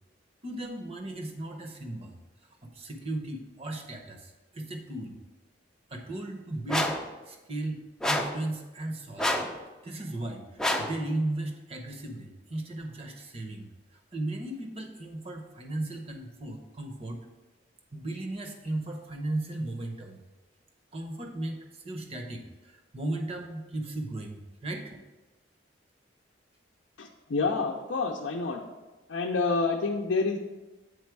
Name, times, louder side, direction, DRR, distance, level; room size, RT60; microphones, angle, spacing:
voice 1, 0.4-2.2 2.6-5.2 5.9-7.0 7.2-9.3 9.8-17.2 17.9-20.2 20.9-25.0, right 2 dB, 30° right, 3 dB, 0.8 m, -36 dB
sound 1, 6.7-7.1 8.0-8.4 9.2-9.6 10.6-11.0, left 1 dB, 5° left, 0.4 m, -28 dB
voice 2, 27.0-28.6 29.1-30.4, left 4 dB, 80° left, 1 dB, 0.5 m, -28 dB
8.1 x 4.2 x 4.6 m, 1.1 s
head